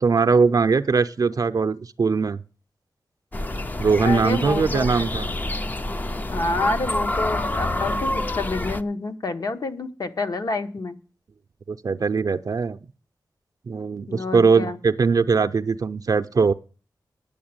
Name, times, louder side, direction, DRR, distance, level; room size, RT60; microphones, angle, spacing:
voice 1, 0.0-2.4 3.8-5.3 11.7-12.8 13.7-16.5, right 5 dB, 55° right, 9 dB, 0.5 m, -21 dB
sound 1, 3.3-8.8, left 1 dB, 25° left, 0.5 m, -27 dB
voice 2, 4.0-5.1 6.3-11.0 14.1-14.8, left 3 dB, 60° left, 8 dB, 1.0 m, -28 dB
10.0 x 6.8 x 8.8 m, 0.38 s
wide cardioid pair, 120°, 7 cm